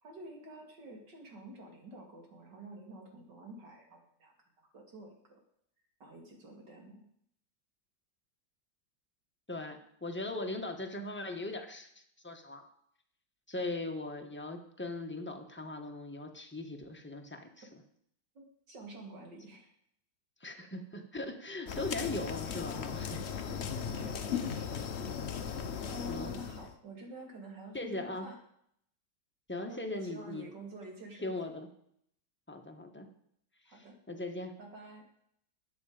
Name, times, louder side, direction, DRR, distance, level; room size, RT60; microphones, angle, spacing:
voice 1, 0.0-4.3 4.7-5.4 6.0-7.0 18.3-19.7 21.5-21.8 23.9-24.7 25.8-28.4 29.7-31.5 33.7-34.0 34.6-35.1, right 1 dB, 60° right, 1 dB, 3.2 m, -49 dB
voice 2, 9.5-12.6 13.5-17.5 20.4-23.2 23.7-24.0 26.1-26.4 27.7-28.3 29.5-30.4 31.2-31.7 32.5-33.1 33.7-34.5, left 2 dB, 5° left, 3 dB, 1.1 m, -39 dB
sound 1, 21.7-26.7, left 7 dB, 50° left, 0.8 m, -37 dB
13.5 x 9.6 x 5.1 m, 0.69 s
omnidirectional pair, 2.1 m